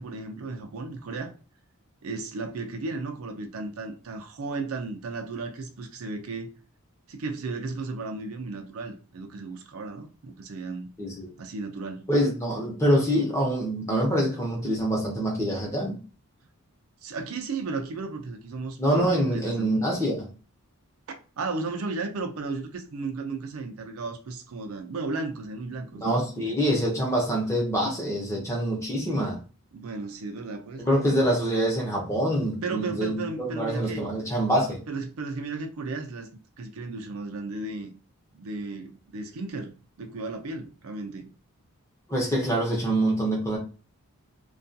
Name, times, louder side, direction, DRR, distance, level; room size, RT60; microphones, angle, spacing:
voice 1, 0.0-1.3 2.0-6.5 7.1-10.9 11.4-12.1 17.0-19.9 21.4-26.2 26.5-26.6 29.7-31.2 32.6-34.1 34.9-36.3 36.6-37.9 38.3-41.3, right 3 dB, 70° right, 0.4 m, -34 dB
voice 2, 11.0-11.3 12.1-16.0 18.8-20.3 26.0-29.4 30.8-34.8 42.1-43.6, right 1 dB, 15° left, 0.7 m, -25 dB
2.3 x 2.3 x 2.6 m
head